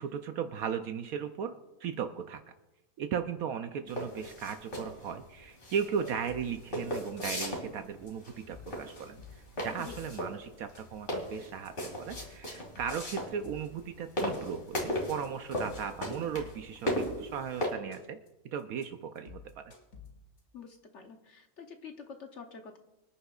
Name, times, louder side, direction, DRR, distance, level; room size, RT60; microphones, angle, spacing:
voice 1, 0.0-2.4 3.0-9.2 9.6-18.2 18.4-19.6, right 7 dB, 75° right, 7 dB, 1.1 m, -37 dB
sound 1, 3.9-17.7, equal, 35° left, 2.6 m, -36 dB
sound 2, 6.3-6.6 6.9-7.5 7.8-8.1 8.4-10.2 10.5-11.1 11.4-11.7 12.0-13.8 14.1-14.7 15.0-15.3 15.6-17.4 17.7-18.3 18.6-18.8 19.2-20.4, left 6 dB, 70° left, 2.6 m, -51 dB
voice 2, 20.5-22.8, left 6 dB, 55° left, 5 dB, 1.1 m, -47 dB
25.0 x 10.0 x 2.4 m, 1.0 s
omnidirectional pair, 1.6 m